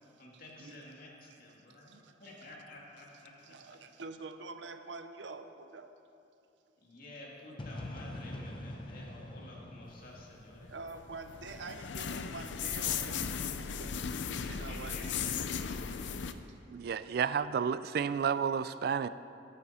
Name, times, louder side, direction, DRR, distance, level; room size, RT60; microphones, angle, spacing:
voice 1, 0.2-3.8 6.8-10.7 14.4-15.7, left 1 dB, 55° left, -3 dB, 2.0 m, -51 dB
voice 2, 1.8-2.1 3.4-6.0 10.7-13.5 13.8-14.0 14.4-15.4 16.5-16.6 17.0-17.2, right 3 dB, 80° right, 8 dB, 0.7 m, -46 dB
sound 1, 7.6-11.4, left 1 dB, 30° left, 0.8 m, -44 dB
sound 2, 10.4-16.3, left 7 dB, 85° left, 0.5 m, -37 dB
voice 3, 16.7-19.1, right 7 dB, 55° right, 15 dB, 0.3 m, -31 dB
14.0 x 8.6 x 4.2 m, 2.7 s
head